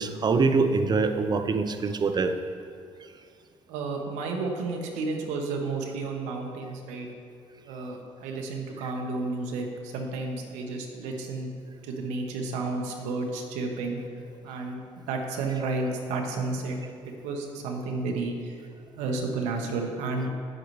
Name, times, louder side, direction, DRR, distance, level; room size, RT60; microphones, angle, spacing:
voice 1, 0.0-2.3, right 4 dB, 35° right, 8 dB, 0.6 m, -24 dB
voice 2, 3.7-7.1 7.6-11.5 11.8-14.0 14.4-16.8 17.0-18.6 19.0-20.3, right 3 dB, 90° right, 2 dB, 1.0 m, -32 dB
8.6 x 7.8 x 3.2 m, 2.4 s
supercardioid pair, 75°, 12 cm